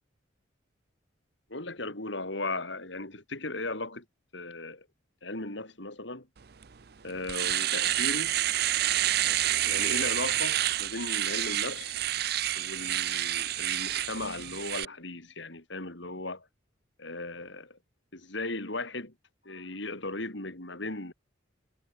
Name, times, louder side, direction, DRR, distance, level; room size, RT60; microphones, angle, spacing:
voice 1, 1.5-4.0 4.3-4.9 5.2-6.3 7.0-8.4 9.3-11.9 12.5-16.5 17.0-17.8 18.1-19.1 19.4-21.1, left 2 dB, 65° left, 4.1 m, -37 dB
Domestic sounds home sounds, 6.6-6.7 7.1-14.9, right 13 dB, 50° right, 0.6 m, -28 dB
head